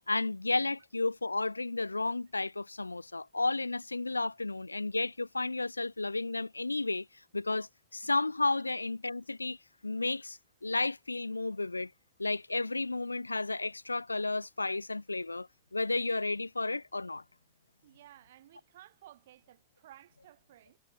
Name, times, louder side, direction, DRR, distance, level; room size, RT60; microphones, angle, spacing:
voice 1, 0.1-7.1 7.3-9.6 9.8-11.9 12.2-17.2, left 3 dB, 80° left, 0.4 m, -32 dB
voice 2, 17.8-20.8, right 13 dB, 60° right, 3.3 m, -56 dB
figure-of-eight pair, 90°, 0 cm